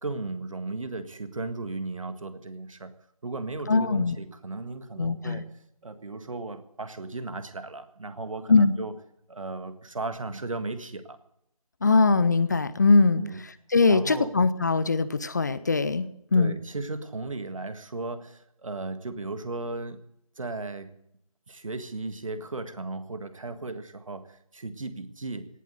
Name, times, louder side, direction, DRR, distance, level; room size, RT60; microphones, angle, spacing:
voice 1, 0.0-2.9 3.2-5.5 5.8-8.9 9.3-11.2 13.2-13.4 13.9-14.3 16.3-20.0 20.4-20.9 21.5-25.5, right 3 dB, 60° right, 11 dB, 1.7 m, -35 dB
voice 2, 3.7-4.2 5.0-5.4 8.5-8.7 11.8-13.2 13.7-16.1 16.3-16.5, left 4 dB, 30° left, 16 dB, 0.6 m, -21 dB
18.0 x 7.9 x 9.4 m, 0.74 s
figure-of-eight pair, 160°, 19 cm